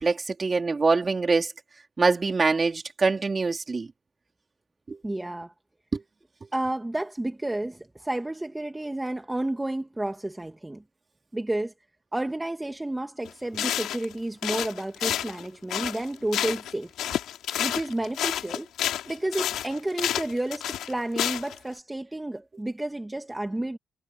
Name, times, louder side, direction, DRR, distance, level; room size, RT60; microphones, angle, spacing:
voice 1, 0.0-1.5 2.0-3.9 4.9-5.0 5.9-6.0, right 4 dB, 30° right, 3.6 m, -24 dB
voice 2, 5.0-5.5 6.5-10.8 11.3-11.7 12.1-17.2 17.6-18.7 19.1-23.8, right 1 dB, 10° right, 1.6 m, -31 dB
sound 1, 13.2-13.3 13.6-14.1 14.4-16.7 17.0-21.6, left 11 dB, 80° left, 3.2 m, -29 dB
cardioid pair, 90°, 0 cm